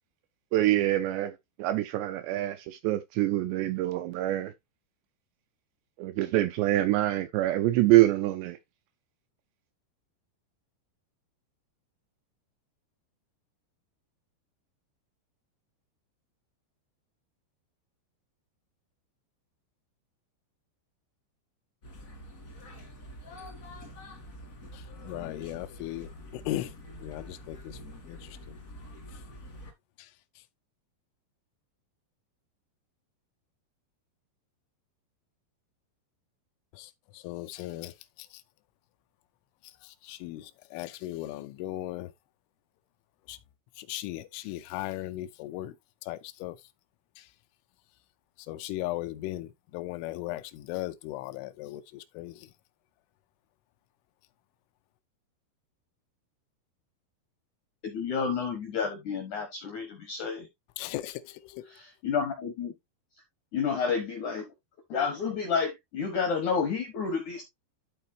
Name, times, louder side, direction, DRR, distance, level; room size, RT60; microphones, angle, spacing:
voice 1, 0.5-4.5 6.0-8.6, right 15 dB, 80° right, 2.5 m, -25 dB
sound 1, 21.8-29.7, left 1 dB, 50° left, 0.9 m, -46 dB
voice 2, 25.0-26.7 27.0-27.8 28.1-28.2 36.8-37.9 40.0-42.1 43.3-43.4 43.8-45.7 46.1-46.6 48.5-52.4 60.8-61.6, left 15 dB, 90° left, 3.2 m, -37 dB
voice 3, 57.8-60.5 61.7-62.7 63.5-64.5 64.9-67.4, left 6 dB, 75° left, 1.8 m, -30 dB
12.5 x 4.4 x 2.7 m
omnidirectional pair, 5.4 m